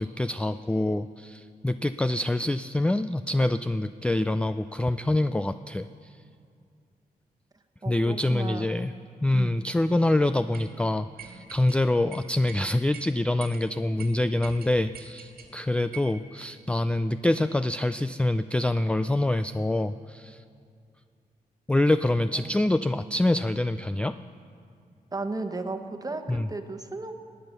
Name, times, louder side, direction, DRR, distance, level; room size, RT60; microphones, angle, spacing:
voice 1, 0.0-5.9 7.9-8.9 9.2-20.4 21.7-24.1 26.3-26.5, left 1 dB, 5° left, 11 dB, 0.3 m, -25 dB
voice 2, 7.8-8.7 9.3-9.6 22.3-22.5 25.1-27.1, right 3 dB, 25° right, 6 dB, 1.2 m, -34 dB
sound 1, 10.5-10.7 11.2-11.8 12.1-12.6 12.9-13.1 13.4-13.6 14.0-14.1 14.4-15.5 15.9-16.2, right 7 dB, 75° right, 1.9 m, -44 dB
18.5 x 8.9 x 6.6 m, 2.3 s
cardioid pair, 75°, 16 cm